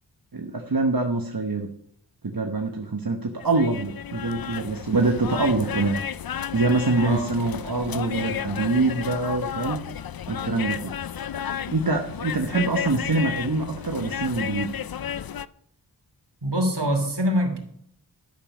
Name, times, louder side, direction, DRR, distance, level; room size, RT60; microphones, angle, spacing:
voice 1, 0.3-1.7 2.2-6.0 6.3-9.8 10.3-10.9 11.7-14.7, right 3 dB, 55° right, 3 dB, 1.1 m, -25 dB
sound 1, 3.4-15.5, left 9 dB, 55° left, 0.5 m, -32 dB
voice 2, 6.9-7.4 16.4-17.6, equal, 70° right, 3 dB, 2.8 m, -24 dB
12.0 x 6.9 x 6.1 m, 0.68 s
wide cardioid pair, 50°, 43 cm